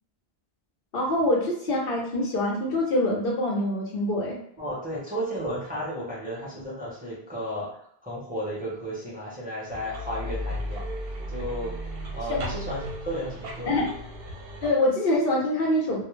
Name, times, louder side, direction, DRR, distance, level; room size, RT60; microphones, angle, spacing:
voice 1, 0.9-4.4 12.3-12.4 13.7-13.8 14.6-16.0, left 1 dB, 65° left, -2 dB, 0.8 m, -25 dB
voice 2, 4.6-10.8 11.3-11.8 12.1-12.8 13.0-13.8, equal, 10° right, -7 dB, 0.7 m, -33 dB
sound 1, 9.7-14.7, equal, 70° right, 0.8 m, -35 dB
2.3 x 2.0 x 3.1 m, 0.70 s
omnidirectional pair, 1.0 m